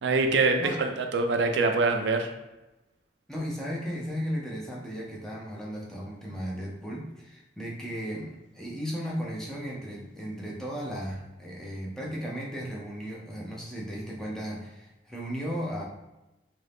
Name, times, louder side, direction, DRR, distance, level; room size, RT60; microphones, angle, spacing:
voice 1, 0.0-2.3, right 3 dB, 70° right, 4 dB, 0.4 m, -24 dB
voice 2, 3.3-15.8, equal, 5° left, -5 dB, 0.6 m, -35 dB
2.8 x 2.6 x 3.3 m, 0.99 s
head